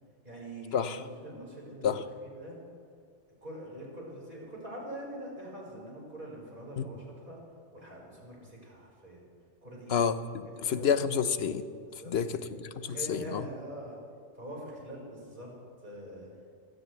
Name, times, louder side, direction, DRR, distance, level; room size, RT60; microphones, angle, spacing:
voice 1, 0.2-2.6 3.4-7.4 7.7-9.2 9.6-10.0 10.6-10.9 12.0-14.0 14.4-15.5 15.8-16.3, right 1 dB, 45° right, -4 dB, 5.3 m, -44 dB
voice 2, 9.9-11.7 12.1-13.4, left 7 dB, 65° left, 12 dB, 1.0 m, -29 dB
25.0 x 17.5 x 3.3 m, 2.5 s
omnidirectional pair, 1.2 m